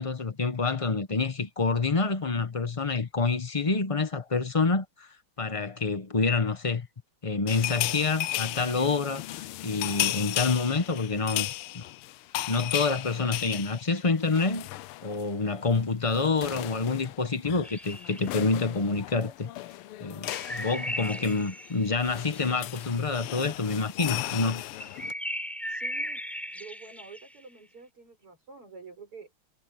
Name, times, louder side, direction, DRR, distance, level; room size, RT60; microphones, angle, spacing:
voice 1, 0.0-5.1 5.4-6.9 7.2-11.5 11.7-11.9 12.5-14.7 15.0-19.5 20.0-24.6, left 4 dB, 60° left, 0.3 m, -27 dB
sound 1, 7.5-15.3 15.6-15.8 16.1-25.1, left 15 dB, 90° left, 1.5 m, -35 dB
sound 2, 17.6-18.4 20.2-22.9 24.8-27.4, equal, ahead, 4.8 m, -37 dB
voice 2, 25.7-26.2 26.5-29.3, right 4 dB, 85° right, 7.2 m, -48 dB
omnidirectional pair, 2.4 m